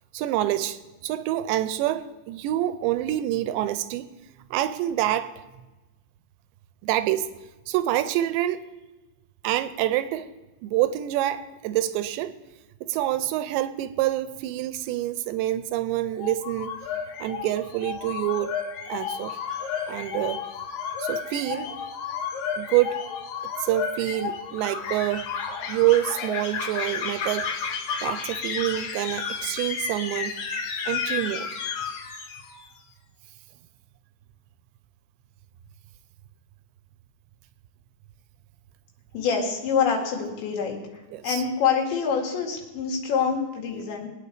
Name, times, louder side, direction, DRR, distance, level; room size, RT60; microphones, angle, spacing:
voice 1, 0.1-4.2 4.5-5.3 6.8-7.3 7.7-8.6 9.4-10.3 10.6-12.3 12.8-16.8 17.2-18.5 18.9-20.4 21.0-21.7 22.6-23.0 23.6-25.3 25.7-27.7 28.0-30.3 30.9-31.5 41.1-41.4, right 13 dB, 90° right, 12 dB, 2.9 m, -26 dB
sound 1, 16.2-32.7, left 6 dB, 65° left, 2.5 m, -32 dB
voice 2, 39.1-40.8 41.2-44.1, left 6 dB, 85° left, 0 dB, 4.5 m, -25 dB
23.5 x 9.2 x 3.4 m, 1.1 s
omnidirectional pair, 5.0 m